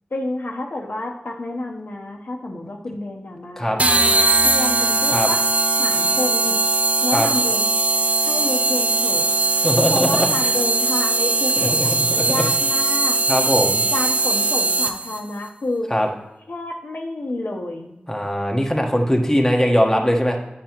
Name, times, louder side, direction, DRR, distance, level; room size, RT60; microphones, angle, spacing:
voice 1, 0.1-4.2 4.4-5.4 5.8-6.6 7.0-7.7 8.3-9.3 9.9-13.2 13.9-15.9 16.5-17.9, left 2 dB, 75° left, 0 dB, 0.9 m, -29 dB
sound 1, 3.8-15.2, right 3 dB, 40° right, 0.6 m, -20 dB
voice 2, 9.6-10.5 11.6-11.9 12.2-12.4 13.3-13.8 15.9-16.1 18.1-20.4, equal, 10° left, 1 dB, 1.2 m, -20 dB
8.8 x 6.2 x 3.0 m, 0.97 s
wide cardioid pair, 50°, 3 cm